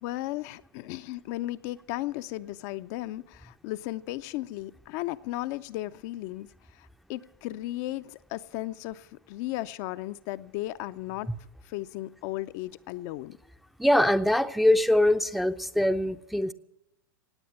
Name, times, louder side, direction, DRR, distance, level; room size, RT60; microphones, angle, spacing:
voice 1, 0.0-11.3 11.6-13.4, left 16 dB, 50° left, 11 dB, 0.5 m, -35 dB
voice 2, 13.8-16.5, left 1 dB, ahead, 9 dB, 0.5 m, -23 dB
17.5 x 8.5 x 8.7 m, 0.91 s
hypercardioid pair, 110°, 12 cm